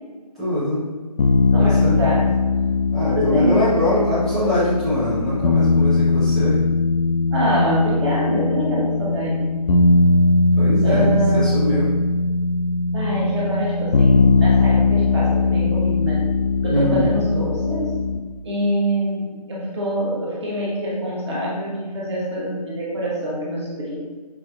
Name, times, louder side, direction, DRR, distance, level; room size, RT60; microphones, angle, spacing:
voice 1, 0.4-0.8 1.5-2.0 2.9-6.7 10.6-11.9 16.7-17.1, left 1 dB, ahead, -16 dB, 0.8 m, -22 dB
sound 1, 1.2-18.2, left 3 dB, 70° left, 0.4 m, -19 dB
voice 2, 1.5-2.3 3.1-3.7 7.3-9.5 10.8-11.5 12.9-16.3 16.6-17.9 18.4-24.0, equal, 45° right, -5 dB, 0.9 m, -24 dB
4.8 x 2.1 x 2.4 m, 1.4 s
figure-of-eight pair, 155°, 21 cm